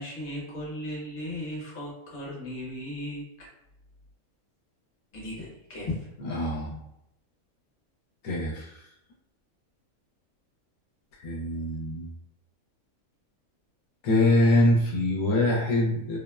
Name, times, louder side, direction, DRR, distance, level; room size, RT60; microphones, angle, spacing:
voice 1, 0.0-3.2 5.1-6.1, left 1 dB, 40° left, -4 dB, 1.0 m, -36 dB
voice 2, 6.3-6.8 8.2-8.6 11.2-12.1 14.0-16.2, left 1 dB, 80° left, -4 dB, 1.0 m, -24 dB
3.3 x 2.0 x 2.3 m, 0.82 s
omnidirectional pair, 1.5 m